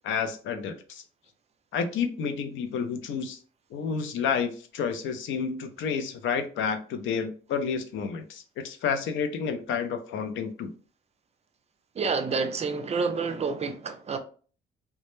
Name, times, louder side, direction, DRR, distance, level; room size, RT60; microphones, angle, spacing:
voice 1, 0.0-1.0 1.7-3.4 3.7-10.7, left 6 dB, 75° left, 0.5 m, -30 dB
voice 2, 12.0-14.2, right 4 dB, 35° right, 0.4 m, -28 dB
2.2 x 2.0 x 3.0 m
cardioid pair, 90°, 20 cm